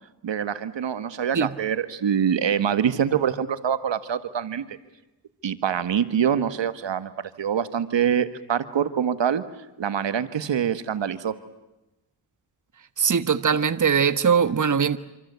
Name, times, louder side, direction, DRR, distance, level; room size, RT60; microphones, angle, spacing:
voice 1, 0.2-4.8 5.4-9.4 9.8-11.3, right 8 dB, 80° right, 1.6 m, -25 dB
voice 2, 13.0-15.0, right 6 dB, 45° right, 1.3 m, -21 dB
26.5 x 26.0 x 8.2 m
cardioid pair, 55°, 43 cm